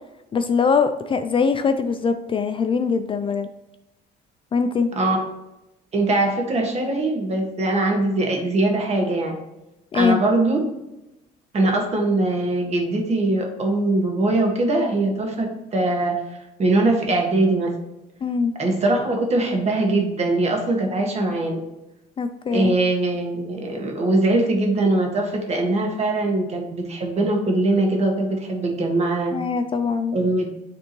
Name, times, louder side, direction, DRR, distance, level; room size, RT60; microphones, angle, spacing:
voice 1, 0.3-3.5 4.5-4.9 9.9-10.2 18.2-18.5 22.2-22.7 29.3-30.2, left 5 dB, 30° left, 9 dB, 0.4 m, -22 dB
voice 2, 5.9-9.4 9.9-10.6 11.5-16.2 16.6-17.7 18.6-21.6 22.5-29.3 30.1-30.5, right 2 dB, 40° right, 2 dB, 1.5 m, -21 dB
9.3 x 3.5 x 3.0 m, 0.95 s
cardioid pair, 110°, 17 cm